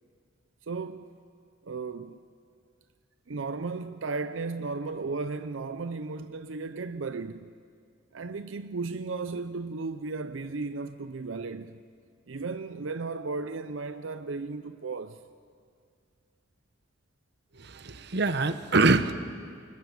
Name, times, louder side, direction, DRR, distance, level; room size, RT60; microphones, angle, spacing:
voice 1, 0.6-1.1 1.6-2.2 3.3-7.5 8.1-11.8 12.3-15.2, right 4 dB, 85° right, 0.7 m, -35 dB
voice 2, 17.7-19.1, right 3 dB, 60° right, 1.0 m, -24 dB
25.5 x 21.5 x 7.2 m
head